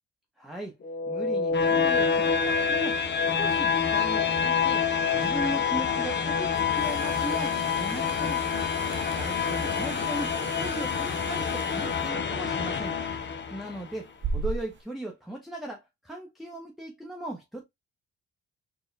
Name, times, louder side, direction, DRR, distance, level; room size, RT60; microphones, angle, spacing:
voice 1, 0.4-0.8 1.1-3.0 3.4-8.5 9.2-13.0 13.5-17.7, right 1 dB, ahead, 0.8 m, -38 dB
sound 1, 0.8-13.8, left 6 dB, 40° left, 0.7 m, -27 dB
sound 2, 6.6-14.8, right 4 dB, 40° right, 0.6 m, -39 dB
4.3 x 2.2 x 3.2 m
cardioid pair, 90°, 30 cm